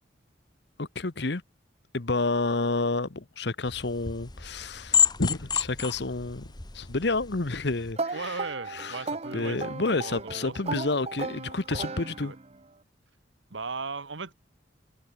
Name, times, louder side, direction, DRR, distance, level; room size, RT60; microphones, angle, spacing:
voice 1, 0.8-1.4 1.9-8.4 8.7-9.0 9.3-12.3, left 3 dB, 60° left, 1.1 m, -30 dB
sound 1, 3.7-7.9, left 7 dB, 25° left, 1.5 m, -30 dB
sound 2, 8.0-12.6, right 3 dB, 35° right, 1.0 m, -36 dB
voice 2, 8.1-10.7 12.2-12.4 13.5-14.3, right 4 dB, 80° right, 1.7 m, -37 dB
head